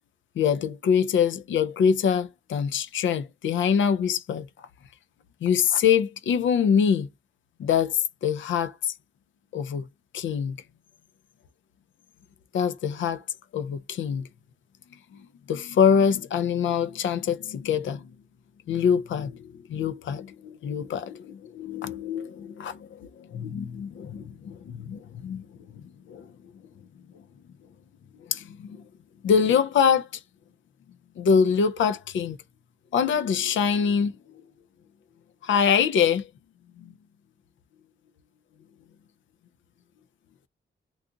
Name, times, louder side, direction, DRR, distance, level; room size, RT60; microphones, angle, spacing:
voice 1, 0.4-4.5 5.4-7.1 7.6-8.9 9.5-9.9 10.1-10.6 12.5-13.2 13.5-14.3 15.1-18.1 18.7-25.5 25.7-26.3 28.3-28.8 29.2-30.2 31.2-32.4 32.9-34.1 35.4-36.3 36.8-36.9, left 7 dB, 90° left, 0.4 m, -24 dB
2.6 x 2.4 x 3.7 m
cardioid pair, 95°, 19 cm